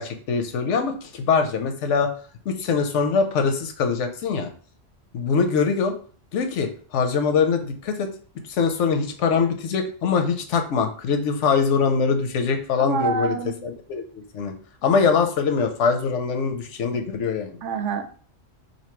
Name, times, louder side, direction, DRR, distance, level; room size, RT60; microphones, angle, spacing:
voice 1, 0.0-2.1 2.5-4.5 5.1-5.9 6.3-8.1 8.5-13.4 13.6-14.5 14.8-17.6, left 5 dB, 85° left, 7 dB, 1.0 m, -23 dB
voice 2, 12.8-13.5 17.6-18.0, right 6 dB, 90° right, 8 dB, 0.9 m, -26 dB
3.0 x 2.6 x 4.4 m, 0.43 s
omnidirectional pair, 1.2 m